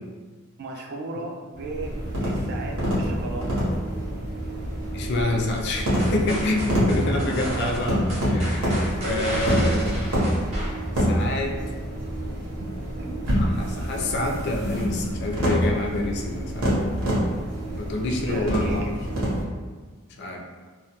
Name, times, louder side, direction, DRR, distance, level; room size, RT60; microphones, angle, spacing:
voice 1, 0.6-1.9 2.2-3.6 9.0-10.0 10.8-10.9 12.5-12.7 13.0-13.3 18.1-19.1, right 2 dB, 50° right, 2 dB, 0.3 m, -35 dB
sound 1, 1.5-19.4, equal, 80° right, 0.9 m, -26 dB
voice 2, 4.9-9.9 11.0-11.5 13.3-16.7 17.8-19.0 20.2-20.4, left 2 dB, 55° left, 1 dB, 0.3 m, -27 dB
sound 2, 6.0-11.2, right 1 dB, 30° right, 0.7 m, -33 dB
2.2 x 2.1 x 2.8 m, 1.4 s
head